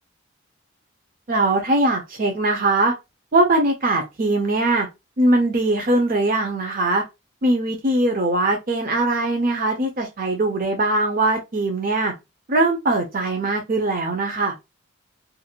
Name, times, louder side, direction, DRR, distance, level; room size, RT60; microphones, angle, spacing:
voice 1, 1.3-2.9 3.3-4.9 5.2-7.0 7.4-12.1 12.5-14.5, right 2 dB, 45° right, 0.6 m, -21 dB
2.6 x 2.4 x 2.8 m
head